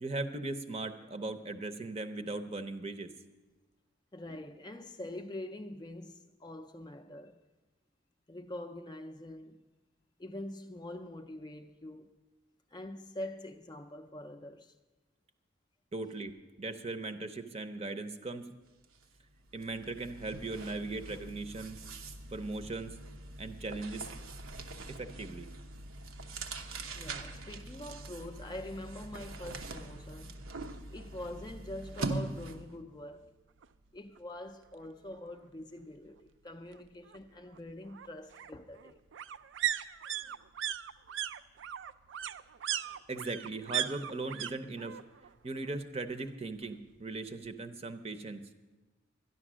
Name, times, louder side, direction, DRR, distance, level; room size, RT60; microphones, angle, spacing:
voice 1, 0.0-3.1 15.9-16.3 16.6-18.5 19.5-21.8 22.3-22.9 23.4-24.1 25.0-25.5 43.1-44.9 45.4-48.4, right 3 dB, 30° right, 0.7 m, -38 dB
voice 2, 4.1-7.4 8.3-9.7 10.2-12.2 12.7-14.8 27.0-30.4 30.9-33.3 33.9-39.0, left 1 dB, 20° left, 0.4 m, -44 dB
sound 1, 18.8-19.0 19.3-32.8, right 2 dB, 85° right, 0.9 m, -43 dB
sound 2, 33.6-33.7 34.1-34.2 34.4-35.4 36.7-44.5 44.8-45.3 45.6-46.7 47.0-47.1, right 11 dB, 65° right, 0.4 m, -38 dB
12.5 x 10.5 x 6.1 m
head